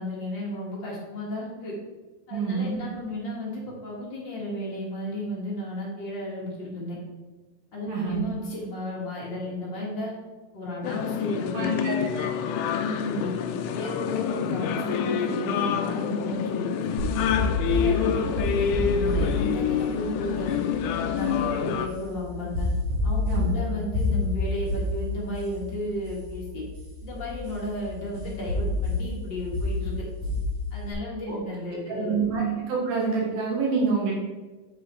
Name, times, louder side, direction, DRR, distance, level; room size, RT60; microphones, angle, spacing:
voice 1, 0.0-1.7 2.3-7.0 7.7-10.1 10.5-12.0 12.7-13.3 13.7-16.9 17.3-20.5 21.0-22.7 23.0-26.6 27.0-29.9 30.7-32.2, left 1 dB, 45° left, -5 dB, 1.6 m, -33 dB
voice 2, 2.3-2.7 7.9-8.2 11.5-12.3 23.3-23.5 31.3-31.4 31.9-34.1, right 5 dB, 85° right, -3 dB, 3.3 m, -27 dB
sound 1, 10.8-21.9, left 8 dB, 90° left, 1.7 m, -27 dB
sound 2, 17.0-30.9, left 2 dB, 60° right, 3.3 m, -29 dB
9.0 x 4.9 x 4.6 m, 1.3 s
omnidirectional pair, 4.2 m